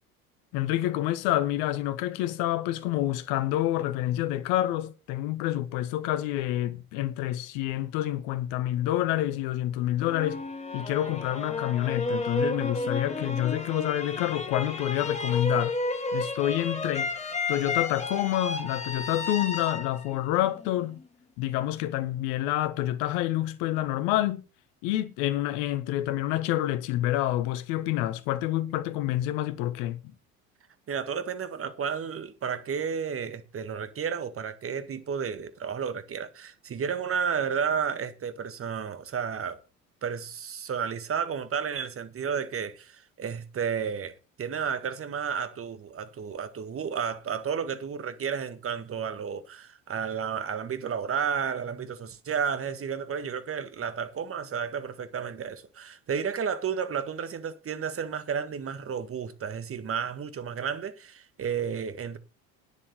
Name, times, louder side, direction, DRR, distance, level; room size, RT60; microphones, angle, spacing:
voice 1, 0.5-10.4 10.7-15.8 16.1-17.2 17.5-21.0 21.4-24.4 24.8-30.0, left 14 dB, 60° left, 1.5 m, -28 dB
sound 1, 10.0-21.0, left 3 dB, 15° left, 2.7 m, -32 dB
voice 2, 30.9-39.6 40.0-62.2, right 7 dB, 30° right, 1.7 m, -32 dB
9.9 x 8.3 x 6.6 m
hypercardioid pair, 70°, 43 cm